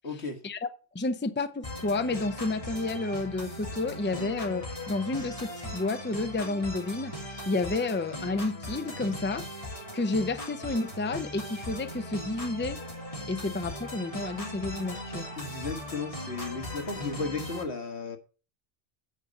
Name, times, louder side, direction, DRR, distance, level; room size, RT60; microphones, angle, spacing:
voice 1, 0.0-0.4 15.3-18.2, left 4 dB, 90° left, 1.9 m, -34 dB
voice 2, 0.9-9.4 9.9-12.8 13.3-15.3, left 3 dB, 15° left, 0.6 m, -31 dB
sound 1, 1.6-17.6, left 1 dB, 30° left, 3.2 m, -39 dB
9.2 x 5.2 x 7.7 m
omnidirectional pair, 1.1 m